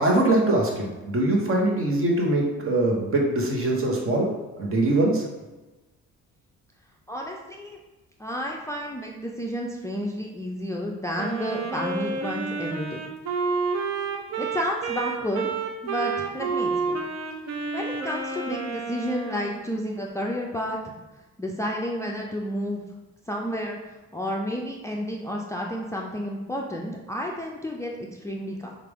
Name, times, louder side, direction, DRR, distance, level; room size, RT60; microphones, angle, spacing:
voice 1, 0.0-4.3 4.6-5.3, right 2 dB, 45° right, -1 dB, 1.1 m, -22 dB
voice 2, 7.1-7.8 8.2-13.1 14.4-15.5 15.8-17.0 17.7-20.9 21.4-22.8 23.3-23.8 24.1-28.7, equal, 10° left, -1 dB, 0.4 m, -31 dB
Wind instrument woodwind instrument, 11.2-19.7, right 4 dB, 60° right, 0.6 m, -30 dB
4.6 x 2.5 x 3.5 m, 1.1 s
cardioid pair, 90°, 30 cm